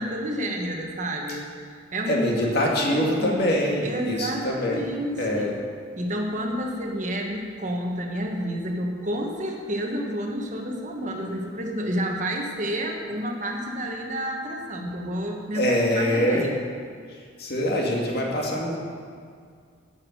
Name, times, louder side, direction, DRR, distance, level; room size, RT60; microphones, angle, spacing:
voice 1, 0.0-1.5 1.9-3.4 3.8-5.4 5.9-16.5, equal, 40° right, 1 dB, 1.3 m, -30 dB
voice 2, 2.1-4.9 5.2-5.5 15.5-16.5 17.1-18.8, equal, 55° left, -1 dB, 2.0 m, -24 dB
10.0 x 7.2 x 7.9 m, 2.1 s
head